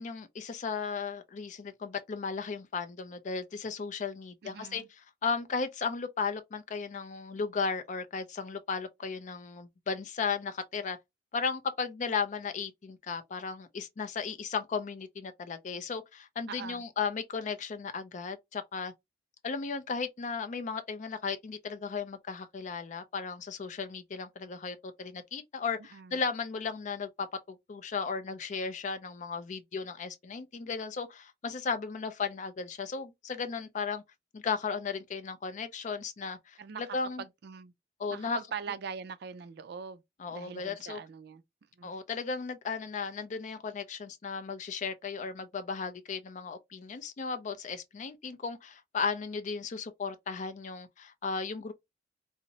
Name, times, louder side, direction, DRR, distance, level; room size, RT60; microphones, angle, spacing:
voice 1, 0.0-4.8 5.2-11.0 11.3-18.9 19.4-34.0 34.3-37.2 38.0-38.4 40.2-41.0 41.8-51.7, left 5 dB, 40° left, 0.4 m, -35 dB
voice 2, 4.4-4.9 16.5-16.8 25.9-26.2 36.6-36.8 37.2-37.7 38.1-40.0 40.3-41.4 41.8-41.9, right 6 dB, 60° right, 0.3 m, -42 dB
2.6 x 2.0 x 2.7 m
head